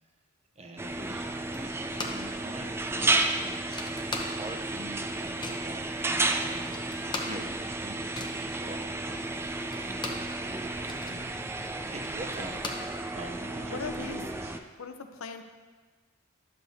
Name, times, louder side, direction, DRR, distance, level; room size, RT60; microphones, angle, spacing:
voice 1, 0.6-3.8 4.3-9.4 9.8-14.6, right 1 dB, 30° right, 3 dB, 0.8 m, -45 dB
sound 1, 0.8-14.6, right 2 dB, 10° right, 0.3 m, -32 dB
sound 2, 1.5-2.4 2.6-2.7 3.0-4.7 5.0-5.7 6.2-6.3 6.5-10.4 10.7-13.4, left 2 dB, 20° left, 0.8 m, -40 dB
voice 2, 13.6-14.2 14.8-15.4, left 5 dB, 75° left, 7 dB, 0.6 m, -38 dB
11.0 x 6.8 x 2.8 m, 1.4 s
head